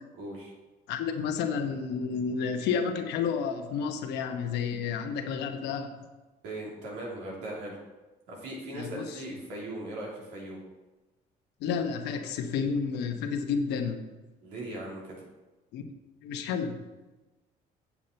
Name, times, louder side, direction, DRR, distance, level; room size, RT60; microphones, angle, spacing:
voice 1, 0.2-0.5 6.4-7.8 8.3-10.6 14.4-15.2, right 1 dB, 90° right, -3 dB, 3.0 m, -39 dB
voice 2, 0.9-5.9 8.7-9.0 11.6-14.1 15.7-15.8 16.2-16.8, left 6 dB, 85° left, 6 dB, 1.0 m, -30 dB
8.3 x 7.3 x 4.3 m, 1.2 s
cardioid pair, 110°, 17 cm